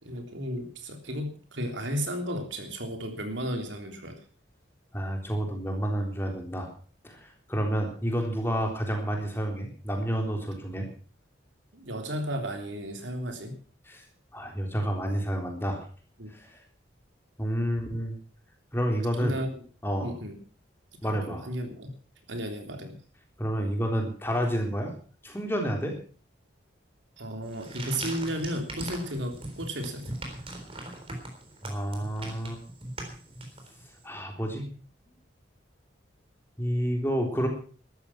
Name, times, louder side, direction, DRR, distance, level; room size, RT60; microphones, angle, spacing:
voice 1, 0.0-4.2 11.7-13.5 16.2-16.3 19.2-19.5 20.0-20.3 21.0-21.9 22.3-23.0 27.2-30.0, equal, 75° right, 4 dB, 3.4 m, -34 dB
voice 2, 4.9-6.7 7.0-10.9 13.9-14.0 14.3-15.8 16.3-16.6 17.4-18.2 18.7-19.4 19.8-20.1 21.0-21.5 23.4-24.9 25.2-25.9 31.6-32.6 34.0-34.6 36.6-37.5, equal, 10° left, 2 dB, 3.6 m, -29 dB
sound 1, 27.4-34.0, right 1 dB, 30° right, 3.8 m, -40 dB
13.5 x 13.0 x 6.0 m, 0.41 s
head